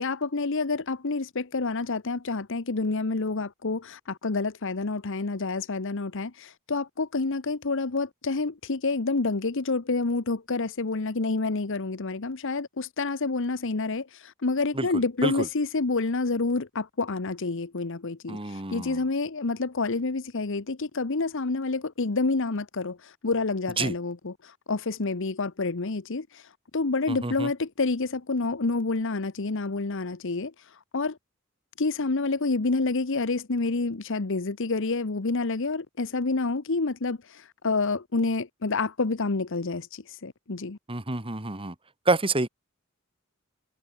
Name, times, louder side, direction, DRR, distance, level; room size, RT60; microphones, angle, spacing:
voice 1, 0.0-31.2 31.8-40.8, left 3 dB, 65° left, 1.0 m, -28 dB
voice 2, 18.3-19.0 23.8-23.9 27.1-27.5 40.9-41.7 42.1-42.5, right 2 dB, 25° right, 2.2 m, -27 dB
head